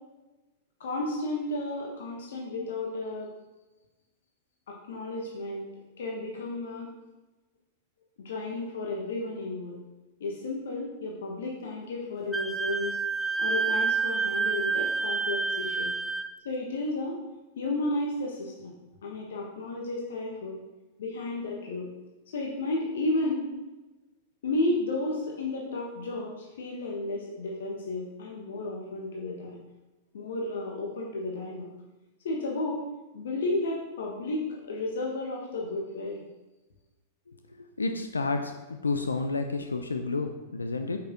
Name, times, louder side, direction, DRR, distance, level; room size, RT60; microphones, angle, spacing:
voice 1, 0.8-3.3 4.7-5.7 6.0-6.9 8.2-9.8 10.2-13.0 13.4-15.9 16.4-17.2 17.6-18.8 19.0-20.6 21.0-21.9 22.3-23.5 24.4-29.6 30.1-31.7 32.2-32.8 33.1-36.2, left 2 dB, 65° left, -1 dB, 1.3 m, -32 dB
Wind instrument woodwind instrument, 12.3-16.3, right 5 dB, ahead, 0.5 m, -28 dB
voice 2, 37.8-41.0, left 3 dB, 80° left, 6 dB, 0.6 m, -30 dB
8.4 x 6.0 x 3.7 m, 1.1 s
figure-of-eight pair, 95°, 0 cm